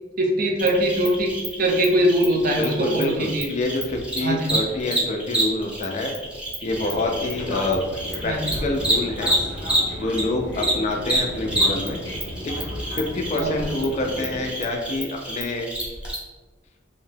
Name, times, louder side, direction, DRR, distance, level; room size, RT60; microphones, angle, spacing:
voice 1, 0.2-3.5 4.2-4.5 8.2-8.6 13.4-13.7, right 1 dB, 50° right, 1 dB, 0.4 m, -22 dB
Cricket, 0.6-10.2 10.5-16.1, right 1 dB, 5° right, 0.6 m, -28 dB
voice 2, 2.6-6.1 6.6-7.8 8.2-9.3 10.0-12.0 12.4-12.6 13.0-15.7, left 2 dB, 35° left, 2 dB, 0.3 m, -26 dB
Fixed-wing aircraft airplane, 6.6-14.5, equal, 75° left, 0.7 m, -34 dB
2.7 x 2.2 x 3.2 m, 1.3 s
head